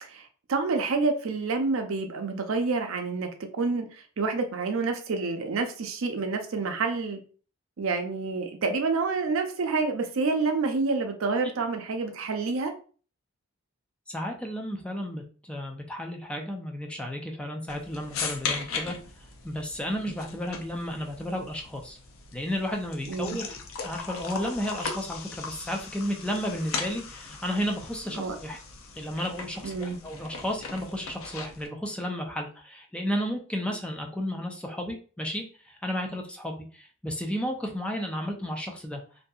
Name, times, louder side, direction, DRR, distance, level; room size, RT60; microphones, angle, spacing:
voice 1, 0.1-3.3 3.6-7.2 7.8-12.7 23.1-23.4 28.1-28.4 29.6-30.0, right 4 dB, 70° right, 5 dB, 0.5 m, -28 dB
voice 2, 14.1-19.0 19.4-22.0 22.3-23.6 23.8-28.6 29.0-39.0, equal, 5° left, 2 dB, 0.3 m, -33 dB
sound 1, 17.7-31.7, left 5 dB, 75° left, 0.5 m, -38 dB
2.6 x 2.6 x 2.3 m, 0.40 s
head